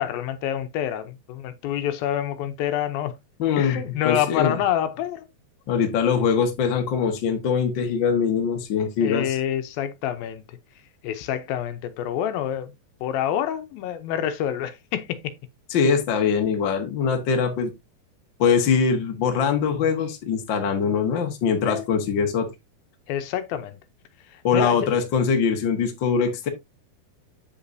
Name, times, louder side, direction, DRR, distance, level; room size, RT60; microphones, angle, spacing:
voice 1, 0.0-3.1 3.6-5.3 9.0-10.6 11.0-12.7 13.0-15.2 21.6-21.9 23.1-23.8 24.3-24.8, left 10 dB, 80° left, 2.5 m, -27 dB
voice 2, 3.4-3.8 4.0-4.6 5.7-9.4 15.7-17.7 18.4-22.5 24.4-26.5, left 6 dB, 55° left, 1.3 m, -22 dB
8.2 x 7.1 x 2.7 m
omnidirectional pair, 4.3 m